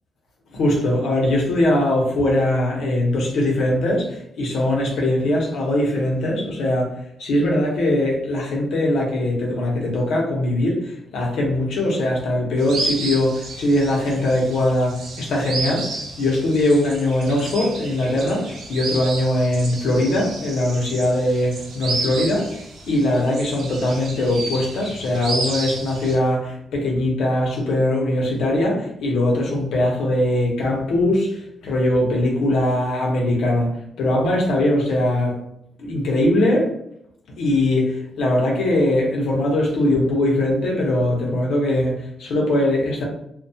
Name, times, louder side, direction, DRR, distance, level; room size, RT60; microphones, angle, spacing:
voice 1, 0.5-15.9 16.2-22.5 22.9-35.4 35.8-36.7 37.4-43.0, left 1 dB, 85° left, -1 dB, 0.7 m, -21 dB
sound 1, 12.6-26.2, right 2 dB, 85° right, 0.6 m, -32 dB
2.2 x 2.2 x 2.7 m, 0.73 s
wide cardioid pair, 170°, 0 cm